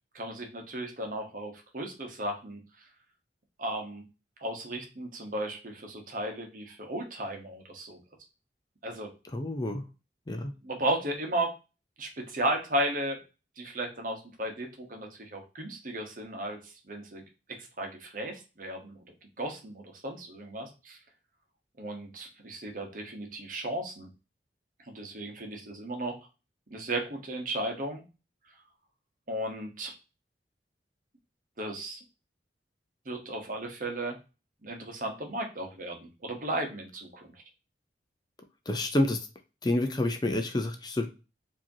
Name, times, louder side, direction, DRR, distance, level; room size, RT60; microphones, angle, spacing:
voice 1, 0.1-2.6 3.6-4.0 4.4-8.0 8.8-9.1 10.6-11.5 12.0-13.2 13.6-19.1 19.4-21.0 21.8-24.1 24.9-26.2 26.7-28.0 29.3-29.9 31.6-32.0 33.0-34.2 34.6-37.3, right 1 dB, 50° right, 3 dB, 1.1 m, -35 dB
voice 2, 9.3-9.8 10.3-10.5 38.7-39.3 39.6-41.1, left 1 dB, 25° left, 6 dB, 0.5 m, -28 dB
4.8 x 2.9 x 2.8 m, 0.30 s
head